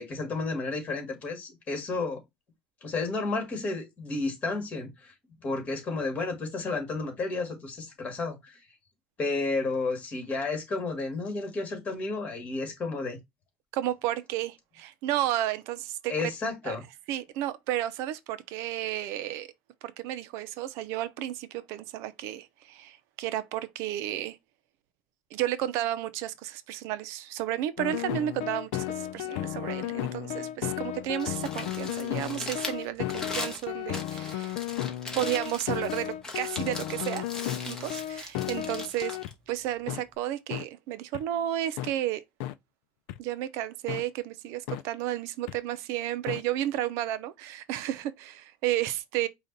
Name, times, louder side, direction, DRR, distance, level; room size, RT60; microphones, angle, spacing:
voice 1, 0.0-2.2 2.8-5.1 5.4-8.6 9.2-13.2 16.1-16.8, left 3 dB, 30° left, 2.0 m, -32 dB
voice 2, 13.7-16.1 16.6-16.8 17.1-19.5 19.8-24.4 25.3-34.6 35.1-37.3 37.6-39.2 39.5-42.2 43.2-49.3, right 13 dB, 70° right, 0.6 m, -32 dB
sound 1, 27.8-39.3 39.9-40.0 40.5-40.6 41.1-41.2 41.8-41.9 42.4-42.5 43.1-43.2 43.9-44.0 44.7-44.8 45.5-45.6 46.3-46.4, left 13 dB, 85° left, 0.5 m, -34 dB
Crumpling crinkling, 31.0-40.2, left 2 dB, 10° left, 1.1 m, -40 dB
5.1 x 2.4 x 4.1 m
cardioid pair, 155°, 5 cm